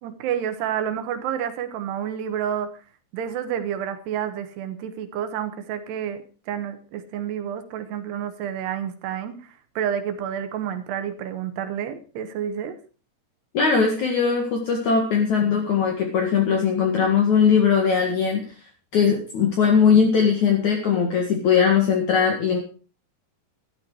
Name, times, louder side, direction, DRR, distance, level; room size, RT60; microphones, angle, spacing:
voice 1, 0.0-2.7 3.1-9.4 9.8-12.8, right 9 dB, 80° right, 9 dB, 3.4 m, -29 dB
voice 2, 13.5-18.4 18.9-22.6, left 6 dB, 55° left, 1 dB, 2.9 m, -20 dB
12.5 x 12.0 x 4.8 m, 0.36 s
omnidirectional pair, 4.7 m